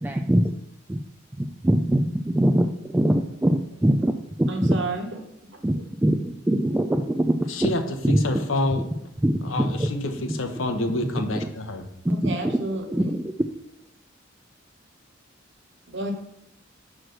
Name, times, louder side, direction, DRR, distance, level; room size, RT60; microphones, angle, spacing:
voice 1, 0.0-0.6 0.9-1.0 1.4-4.1 4.4-4.8 5.6-7.3 7.6-7.7 8.0-8.2 9.2-9.9 11.4-11.5 12.0-12.6 12.9-13.3, right 1 dB, 10° right, 4 dB, 0.3 m, -23 dB
voice 2, 4.5-5.1 12.1-13.1 15.9-16.1, right 2 dB, 65° right, 4 dB, 1.4 m, -30 dB
voice 3, 7.5-7.8 8.1-8.8 9.4-11.8, left 2 dB, 85° left, 6 dB, 1.0 m, -27 dB
6.1 x 4.8 x 6.4 m, 0.78 s
head